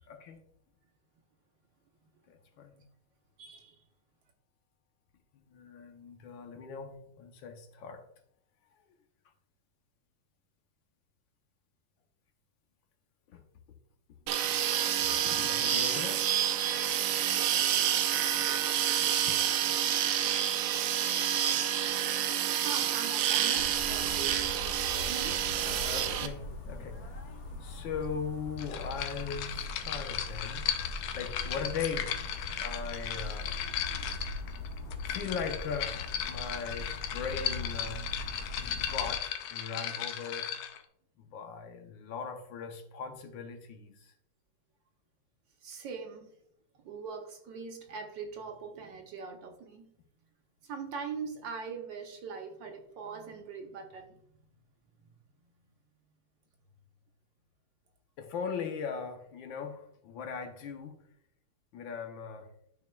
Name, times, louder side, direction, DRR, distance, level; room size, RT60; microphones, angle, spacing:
voice 1, 0.1-0.4 2.3-2.8 5.3-8.0 13.3-13.4 15.1-16.3 19.3-19.5 25.2-27.0 27.6-30.7 31.1-32.2 32.6-33.5 35.1-38.1 38.6-40.5 41.2-44.1 58.2-61.0 61.7-62.5, left 6 dB, 70° left, 5 dB, 1.4 m, -39 dB
voice 2, 3.4-3.8 22.6-24.4 24.6-26.3 45.6-46.3 46.8-49.9 50.6-54.1, right 5 dB, 70° right, 4 dB, 1.4 m, -42 dB
sound 1, 14.3-26.3, right 10 dB, 90° right, 1.5 m, -28 dB
sound 2, 23.5-39.2, left 2 dB, 55° left, 1.2 m, -41 dB
sound 3, 28.6-40.8, left 9 dB, 90° left, 1.5 m, -36 dB
11.5 x 4.6 x 2.2 m, 0.70 s
omnidirectional pair, 2.3 m